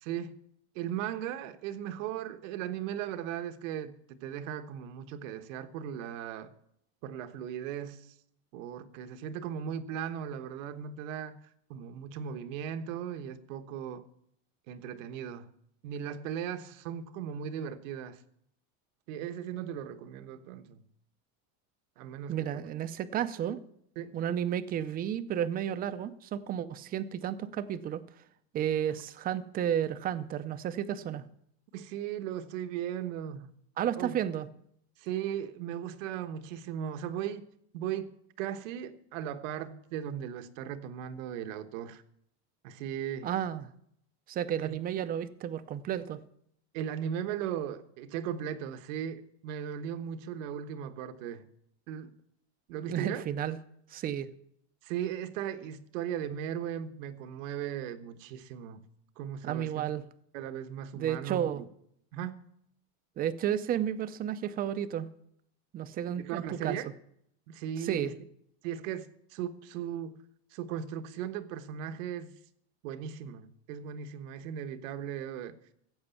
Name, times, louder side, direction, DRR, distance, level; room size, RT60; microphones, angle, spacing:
voice 1, 0.0-0.4 0.7-6.5 7.0-8.1 8.5-11.4 11.7-14.0 14.7-15.5 15.8-18.2 19.1-20.8 22.0-22.7 24.0-24.2 31.7-33.5 34.0-34.1 35.0-37.5 37.7-38.1 38.4-42.0 42.6-43.3 44.6-44.8 46.7-51.5 51.9-52.1 52.7-53.2 54.8-58.8 59.2-59.8 60.3-61.6 62.1-62.4 66.1-66.9 67.5-68.1 68.6-70.2 70.5-72.3 72.8-75.6, right 9 dB, 75° right, 1.3 m, -37 dB
voice 2, 22.3-23.6 24.1-28.0 28.5-31.2 33.8-34.5 43.2-43.7 44.3-46.2 52.9-53.6 53.9-54.3 59.4-60.0 61.0-61.6 63.2-65.1 65.7-66.8 67.8-68.1, right 10 dB, 25° right, 0.5 m, -32 dB
15.0 x 8.0 x 7.0 m
cardioid pair, 160°, 39 cm